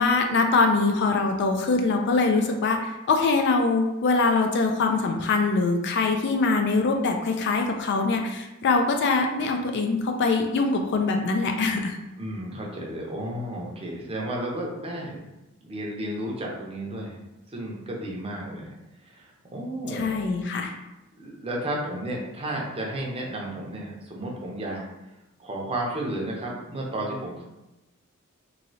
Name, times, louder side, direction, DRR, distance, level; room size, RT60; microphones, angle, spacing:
voice 1, 0.0-12.0 19.9-20.7, left 3 dB, 55° left, 4 dB, 0.4 m, -23 dB
voice 2, 12.2-15.3 15.6-17.2 17.5-18.8 19.0-20.2 21.2-24.8 25.4-27.4, right 1 dB, 25° right, -2 dB, 0.6 m, -32 dB
3.0 x 2.6 x 2.7 m, 0.99 s
head